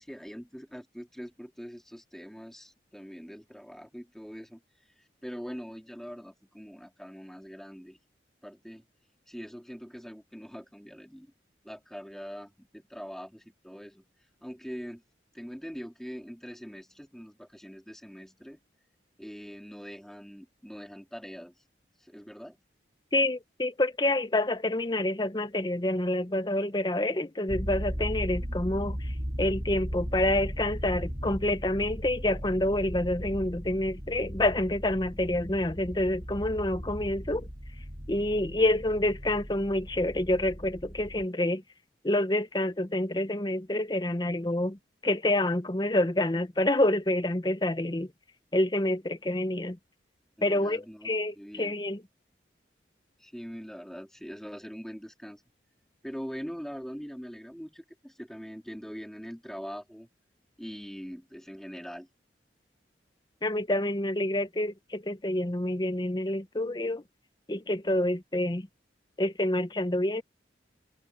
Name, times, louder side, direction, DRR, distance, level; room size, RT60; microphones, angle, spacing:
voice 1, 0.0-4.6 5.2-8.0 8.4-8.8 9.3-11.3 11.6-14.0 14.4-15.0 15.3-18.7 19.2-21.5 22.0-22.6 50.4-51.1 51.4-51.7 53.2-55.4 56.0-60.1 60.6-62.1, equal, ahead, 3.4 m, -43 dB
voice 2, 23.1-37.5 38.1-41.6 42.0-48.1 48.5-49.8 50.4-52.0 63.4-67.0 67.5-68.7 69.2-70.2, left 1 dB, 25° left, 0.8 m, -28 dB
sound 1, 27.5-41.3, equal, 30° right, 4.0 m, -37 dB
head